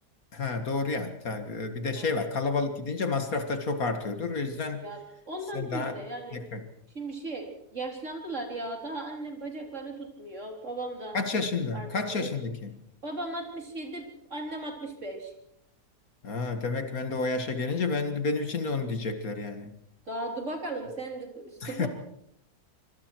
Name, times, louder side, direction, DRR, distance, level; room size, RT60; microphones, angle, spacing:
voice 1, 0.3-4.8 5.5-6.0 6.3-6.6 11.1-12.8 16.2-19.7 21.6-21.9, left 4 dB, 60° left, 8 dB, 2.2 m, -30 dB
voice 2, 5.3-6.4 6.9-11.2 11.7-11.9 12.2-12.3 13.0-15.3 20.1-21.9, right 2 dB, 45° right, 2 dB, 4.2 m, -37 dB
25.0 x 24.5 x 4.6 m, 0.74 s
omnidirectional pair, 1.7 m